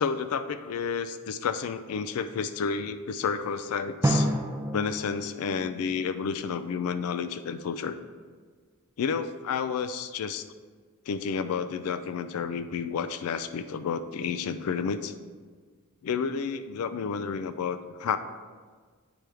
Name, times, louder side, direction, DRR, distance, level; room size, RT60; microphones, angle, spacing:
voice 1, 0.0-4.3 4.7-8.0 9.0-10.4 11.1-15.1 16.0-18.2, left 6 dB, 75° left, 11 dB, 0.4 m, -30 dB
Drum, 4.0-6.7, right 1 dB, 15° right, 0.4 m, -30 dB
8.9 x 3.4 x 4.5 m, 1.5 s
head